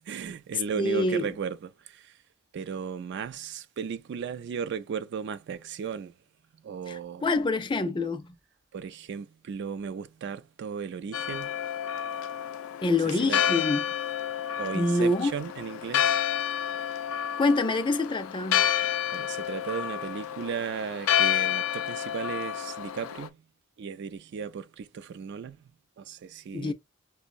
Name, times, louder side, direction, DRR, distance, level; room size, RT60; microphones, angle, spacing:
voice 1, 0.0-2.2 2.5-6.2 6.6-7.3 8.7-11.6 13.0-13.6 14.6-16.2 16.6-16.9 19.1-23.4 23.8-25.7 26.0-26.7, right 6 dB, 55° right, 0.3 m, -36 dB
voice 2, 0.8-1.3 6.9-8.3 12.8-13.8 14.7-15.3 17.4-18.6 26.5-26.7, left 2 dB, 25° left, 0.4 m, -26 dB
Church bell, 11.1-23.3, left 10 dB, 90° left, 0.4 m, -29 dB
5.2 x 2.0 x 2.5 m
head